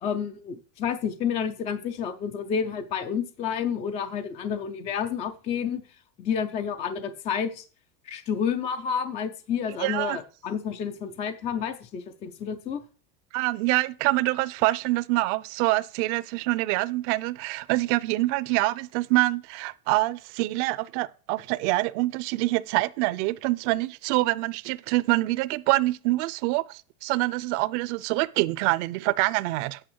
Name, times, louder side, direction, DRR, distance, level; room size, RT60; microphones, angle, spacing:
voice 1, 0.0-5.8 6.2-7.6 8.1-12.8, left 7 dB, 15° left, 0.3 m, -30 dB
voice 2, 9.7-10.2 13.3-29.8, right 20 dB, 55° right, 0.6 m, -25 dB
8.8 x 6.6 x 4.5 m
supercardioid pair, 145°, 43 cm